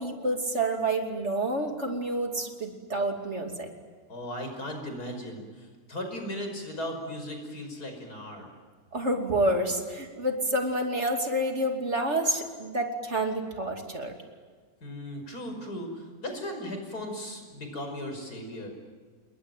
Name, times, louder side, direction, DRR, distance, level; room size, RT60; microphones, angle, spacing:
voice 1, 0.0-3.7 8.9-14.1, right 1 dB, 45° right, 3 dB, 3.1 m, -28 dB
voice 2, 4.1-8.5 14.8-18.7, left 1 dB, 85° left, 4 dB, 6.1 m, -37 dB
28.5 x 21.5 x 9.3 m, 1.5 s
omnidirectional pair, 1.6 m